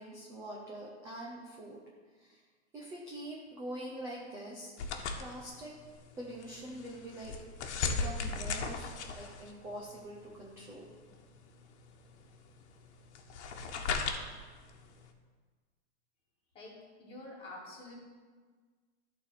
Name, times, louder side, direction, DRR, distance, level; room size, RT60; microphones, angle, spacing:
voice 1, 0.0-1.8 2.2-2.4 2.7-4.7 5.2-5.8 6.2-7.3 7.9-8.9 9.1-10.9, right 1 dB, 10° right, -3 dB, 0.4 m, -44 dB
sound 1, 4.8-15.1, left 4 dB, 70° left, 1.2 m, -39 dB
voice 2, 16.5-17.9, left 2 dB, 15° left, -4 dB, 1.9 m, -48 dB
11.5 x 4.2 x 6.6 m, 1.5 s
supercardioid pair, 170°, 35 cm